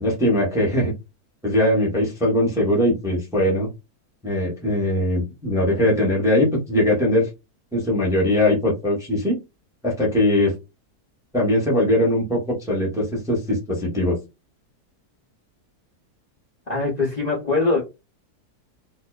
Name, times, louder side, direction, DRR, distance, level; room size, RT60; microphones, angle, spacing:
voice 1, 0.0-0.9 1.4-3.7 4.2-7.3 7.7-9.4 9.8-10.5 11.3-14.2, left 1 dB, 5° right, 0.4 m, -21 dB
voice 2, 16.7-17.8, left 3 dB, 75° left, 0.3 m, -22 dB
2.6 x 2.1 x 2.2 m
omnidirectional pair, 1.7 m